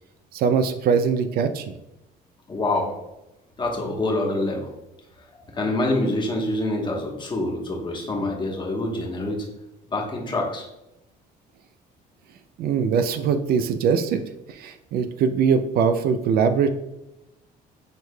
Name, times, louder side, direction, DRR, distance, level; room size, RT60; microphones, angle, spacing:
voice 1, 0.3-1.7 12.6-14.2 14.5-16.7, right 6 dB, 65° right, 9 dB, 0.4 m, -22 dB
voice 2, 2.5-2.9 3.6-4.7 5.5-9.5 9.9-10.7, left 2 dB, 30° left, -1 dB, 1.2 m, -26 dB
6.5 x 3.1 x 2.2 m, 0.91 s
cardioid pair, 110°, 17 cm